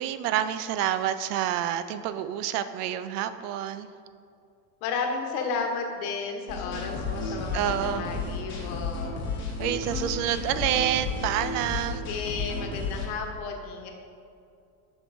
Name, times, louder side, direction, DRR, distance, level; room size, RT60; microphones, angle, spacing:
voice 1, 0.0-3.9 7.5-8.1 9.6-12.0, right 11 dB, 75° right, 12 dB, 0.5 m, -28 dB
voice 2, 4.8-9.6 11.9-13.9, left 4 dB, 65° left, 2 dB, 1.1 m, -33 dB
sound 1, 6.5-13.1, left 3 dB, 25° left, 1.1 m, -32 dB
7.8 x 6.2 x 2.6 m, 2.4 s
supercardioid pair, 155°, 47 cm